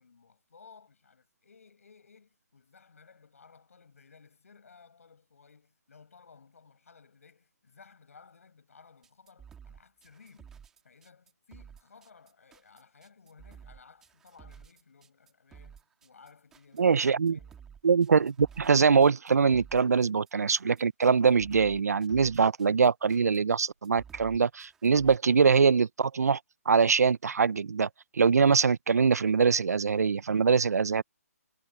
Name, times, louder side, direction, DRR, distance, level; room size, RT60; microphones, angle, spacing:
voice 1, 0.0-10.5 10.8-17.0 17.3-17.6, left 5 dB, 60° left, 6.8 m, -57 dB
sound 1, 9.0-25.1, right 7 dB, 5° right, 1.9 m, -53 dB
voice 2, 16.8-17.4 17.8-26.4 26.7-27.9 28.1-31.0, right 5 dB, 75° right, 0.7 m, -23 dB
hypercardioid pair, 180°, 9 cm